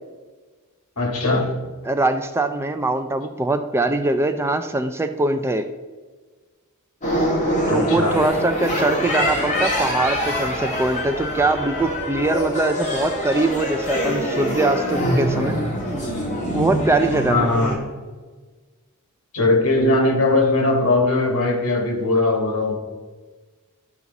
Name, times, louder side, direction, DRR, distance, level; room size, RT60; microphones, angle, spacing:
voice 1, 1.0-1.5 7.7-8.2 17.3-17.7 19.3-22.8, left 2 dB, 75° left, 2 dB, 1.8 m, -19 dB
voice 2, 1.8-5.7 7.7-15.6 16.5-17.5, right 2 dB, 10° right, 8 dB, 0.3 m, -22 dB
sound 1, 7.0-17.8, equal, 35° left, 1.9 m, -24 dB
12.0 x 4.9 x 4.1 m, 1.4 s
head